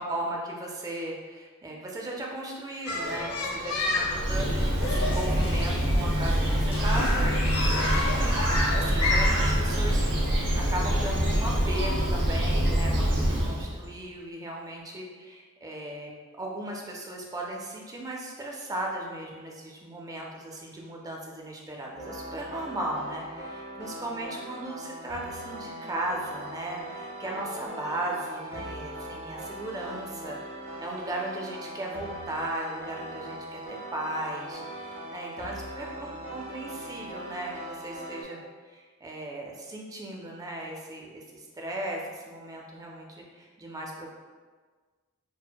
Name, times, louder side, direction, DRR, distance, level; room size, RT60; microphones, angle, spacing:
voice 1, 0.0-10.3 10.5-16.1 16.4-30.4 30.8-33.6 33.9-44.2, right 1 dB, 15° right, -1 dB, 0.4 m, -37 dB
sound 1, 2.9-9.4, left 3 dB, 75° left, 0.6 m, -31 dB
Bird, 3.8-13.9, equal, 55° right, 0.7 m, -25 dB
sound 2, 22.0-38.2, right 1 dB, 75° right, 1.2 m, -40 dB
4.3 x 2.1 x 2.2 m, 1.5 s
head